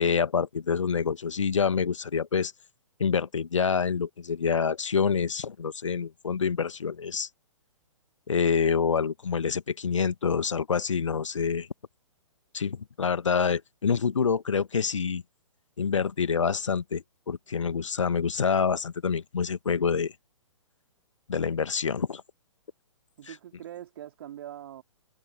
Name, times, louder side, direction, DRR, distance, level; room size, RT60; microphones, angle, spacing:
voice 1, 0.0-2.5 3.0-7.3 8.3-11.7 12.5-15.2 15.8-20.1 21.3-22.2, left 6 dB, 65° left, 1.6 m, -27 dB
voice 2, 23.2-24.8, right 11 dB, 45° right, 3.6 m, -42 dB
figure-of-eight pair, 125°, 17 cm